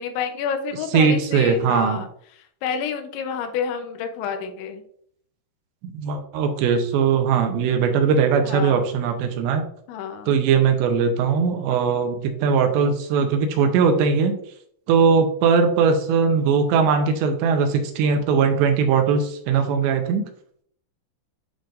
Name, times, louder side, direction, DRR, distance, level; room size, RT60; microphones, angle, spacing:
voice 1, 0.0-2.1 2.6-4.8 8.4-8.8 9.9-10.3, left 7 dB, 80° left, 6 dB, 3.1 m, -29 dB
voice 2, 0.9-2.0 5.8-9.6 10.3-14.4 14.9-20.2, right 6 dB, 80° right, 5 dB, 2.7 m, -20 dB
10.0 x 3.8 x 2.5 m, 0.64 s
omnidirectional pair, 5.4 m